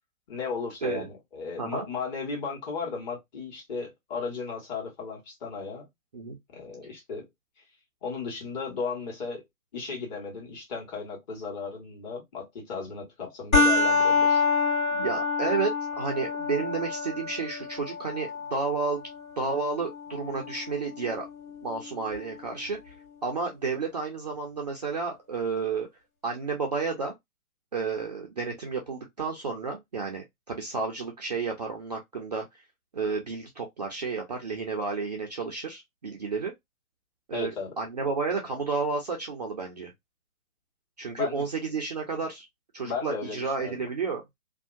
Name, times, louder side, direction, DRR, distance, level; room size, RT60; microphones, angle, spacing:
voice 1, 0.3-5.9 6.5-7.2 8.0-9.4 9.7-14.4 37.3-37.7 41.2-41.5 42.8-43.8, left 5 dB, 30° left, 1.3 m, -35 dB
sound 1, 13.5-22.5, left 4 dB, 75° left, 1.6 m, -28 dB
voice 2, 14.9-15.7 16.0-19.0 19.4-21.3 21.6-22.9 23.2-25.9 26.2-27.1 27.7-32.6 32.9-36.5 37.3-39.9 41.0-42.5 42.7-44.2, right 4 dB, 35° right, 0.4 m, -31 dB
2.6 x 2.1 x 2.4 m
figure-of-eight pair, 135°, 42 cm